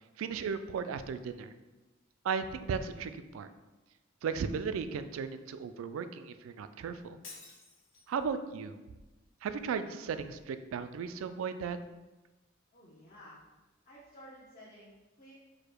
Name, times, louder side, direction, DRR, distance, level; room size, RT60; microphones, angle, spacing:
voice 1, 0.2-1.5 2.2-3.5 4.2-7.2 8.1-8.8 9.4-11.8, right 6 dB, 80° right, 12 dB, 0.3 m, -36 dB
Shatter, 7.2-8.2, left 3 dB, 65° left, 1.0 m, -51 dB
voice 2, 12.7-13.4 13.8-15.4, equal, 45° left, -7 dB, 0.8 m, -53 dB
4.8 x 2.2 x 4.5 m, 1.1 s
head